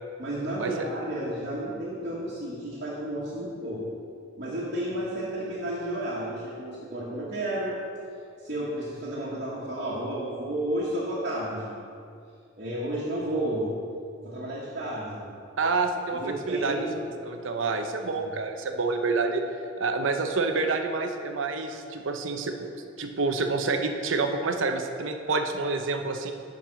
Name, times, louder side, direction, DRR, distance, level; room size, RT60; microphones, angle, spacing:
voice 1, 0.2-3.8 4.4-7.8 8.4-11.8 12.6-13.7 14.2-15.4 16.1-17.0 18.1-18.3, right 1 dB, 50° right, -8 dB, 1.5 m, -32 dB
voice 2, 15.6-16.9 17.2-19.4 19.8-26.3, right 3 dB, 75° right, 5 dB, 0.7 m, -28 dB
7.5 x 5.3 x 6.4 m, 2.3 s
head